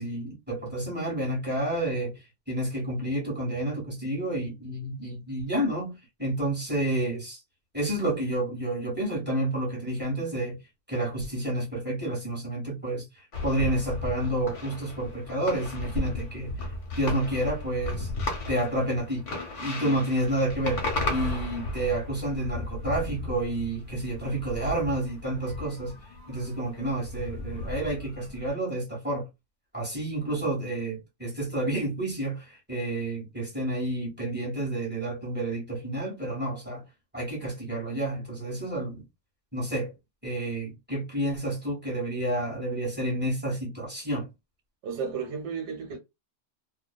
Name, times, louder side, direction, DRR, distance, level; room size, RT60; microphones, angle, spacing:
voice 1, 0.0-7.4 7.7-10.6 10.9-16.5 16.9-18.1 18.5-19.2 19.6-20.8 21.1-25.9 26.3-29.3 29.7-36.8 37.1-39.0 39.5-39.9 40.2-44.3, right 1 dB, 10° right, 1.2 m, -30 dB
sound 1, 13.3-28.5, left 2 dB, 85° left, 1.1 m, -35 dB
voice 2, 44.8-46.0, right 6 dB, 85° right, 1.0 m, -33 dB
2.6 x 2.2 x 2.2 m
omnidirectional pair, 1.2 m